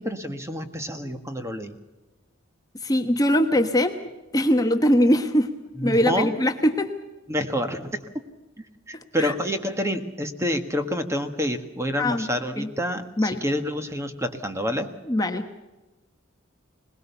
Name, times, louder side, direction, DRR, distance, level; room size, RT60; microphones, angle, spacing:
voice 1, 0.0-1.7 5.8-6.4 7.3-8.1 8.9-14.9, equal, 15° right, 7 dB, 1.5 m, -28 dB
voice 2, 2.8-4.0 4.3-5.5 5.8-6.9 8.9-9.3 12.0-12.3 12.6-12.7 13.2-13.4 15.1-15.5, equal, 20° left, 5 dB, 1.1 m, -21 dB
21.5 x 20.5 x 7.0 m, 1.1 s
head